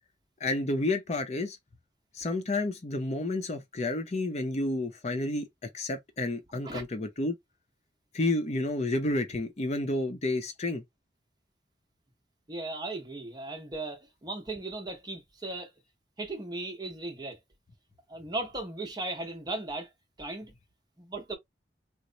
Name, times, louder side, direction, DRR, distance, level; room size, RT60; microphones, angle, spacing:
voice 1, 0.4-1.6 2.1-5.5 5.7-7.4 8.1-10.8, left 2 dB, 40° left, 0.6 m, -30 dB
voice 2, 12.5-15.7 16.2-17.4 18.1-19.9 20.2-20.5 21.0-21.4, right 2 dB, 25° right, 0.9 m, -37 dB
3.0 x 2.0 x 3.8 m
head